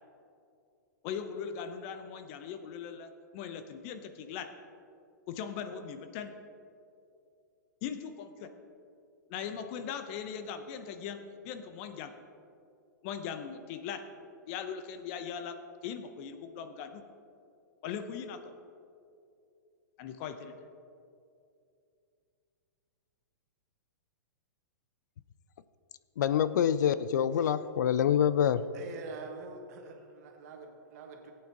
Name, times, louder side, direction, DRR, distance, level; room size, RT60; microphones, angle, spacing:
voice 1, 1.0-4.5 5.3-6.3 7.8-8.5 9.3-12.1 13.0-14.0 14.5-15.6 15.8-17.0 17.8-18.5 20.0-20.5, left 7 dB, 45° left, 8 dB, 0.8 m, -39 dB
voice 2, 26.2-28.6, left 9 dB, 70° left, 15 dB, 0.4 m, -26 dB
voice 3, 28.7-31.3, right 4 dB, 55° right, 3 dB, 1.5 m, -45 dB
16.0 x 8.7 x 3.0 m, 2.5 s
hypercardioid pair, 115°, 10 cm